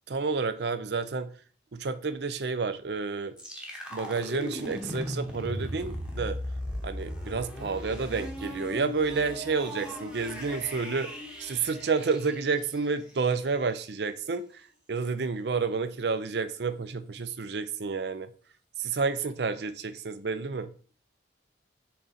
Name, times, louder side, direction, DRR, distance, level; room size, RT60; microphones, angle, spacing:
voice 1, 0.1-1.3 1.7-3.3 3.9-6.4 6.8-11.1 11.4-14.6 14.9-18.3 18.8-20.7, right 4 dB, 60° right, 0.5 m, -30 dB
sound 1, 3.4-13.2, equal, 5° right, 1.0 m, -38 dB
6.7 x 3.8 x 4.1 m
head